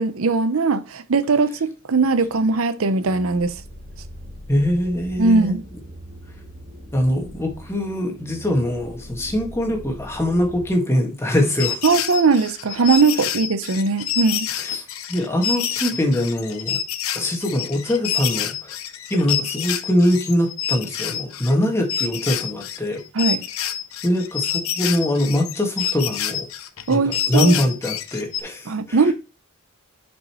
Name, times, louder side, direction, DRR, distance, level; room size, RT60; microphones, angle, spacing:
voice 1, 0.0-3.6 5.2-5.6 11.8-14.5 23.1-23.4 26.9-27.6 28.7-29.1, right 4 dB, 80° right, 0.6 m, -19 dB
sound 1, 3.0-10.7, equal, 55° right, 4.5 m, -40 dB
voice 2, 4.5-5.6 6.9-11.8 14.6-14.8 15.1-16.8 17.1-18.7 19.1-23.0 24.0-26.5 26.9-27.0 27.3-29.0, left 1 dB, 10° left, 1.7 m, -22 dB
sound 2, 11.4-21.6 21.9-28.4, left 9 dB, 85° left, 0.8 m, -27 dB
7.7 x 5.4 x 3.0 m
head